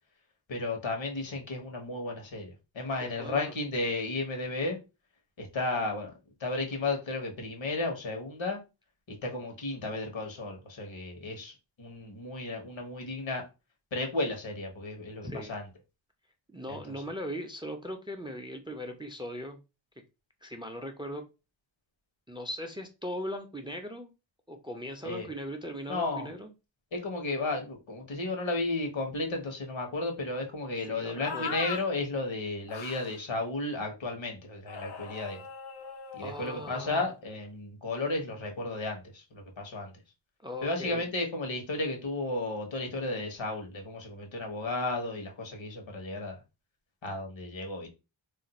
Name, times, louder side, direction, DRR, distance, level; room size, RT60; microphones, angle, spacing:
voice 1, 0.5-4.8 5.4-6.1 6.4-8.6 9.1-13.4 13.9-15.7 16.7-17.0 25.0-25.3 25.9-26.3 26.9-35.4 36.1-39.9 40.6-46.4 47.0-47.9, left 2 dB, 75° left, 1.1 m, -33 dB
voice 2, 3.0-3.5 15.2-15.5 16.5-19.6 20.4-21.3 22.3-24.1 24.5-26.5 30.9-31.6 36.2-37.1 40.4-41.1, equal, 10° right, 0.4 m, -39 dB
sound 1, 31.2-31.8 32.7-33.2 34.7-37.0, left 6 dB, 55° left, 0.6 m, -40 dB
2.5 x 2.2 x 4.0 m
wide cardioid pair, 110°, 46 cm